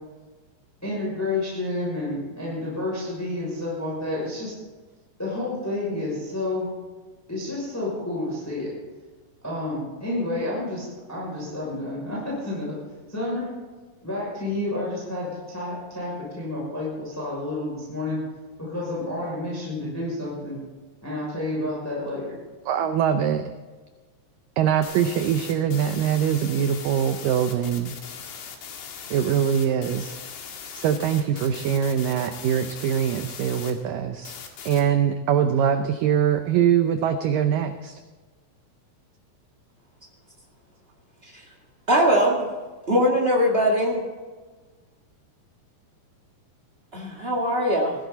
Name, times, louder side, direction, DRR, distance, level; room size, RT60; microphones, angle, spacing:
voice 1, 0.8-4.6 5.2-6.7 7.3-8.7 9.4-12.7 13.1-13.5 14.0-18.2 18.7-20.6 21.0-22.3, left 2 dB, 5° left, -6 dB, 5.9 m, -30 dB
voice 2, 22.7-23.5 24.6-28.0 29.1-30.2 30.8-34.4 34.7-38.0, right 9 dB, 85° right, 8 dB, 1.9 m, -23 dB
sound 1, 24.8-33.7 34.3-34.8, left 7 dB, 85° left, 4.2 m, -39 dB
voice 3, 41.9-42.5 42.9-44.0 46.9-47.9, equal, 65° right, -2 dB, 0.6 m, -21 dB
19.0 x 15.5 x 4.1 m, 1.3 s
omnidirectional pair, 4.9 m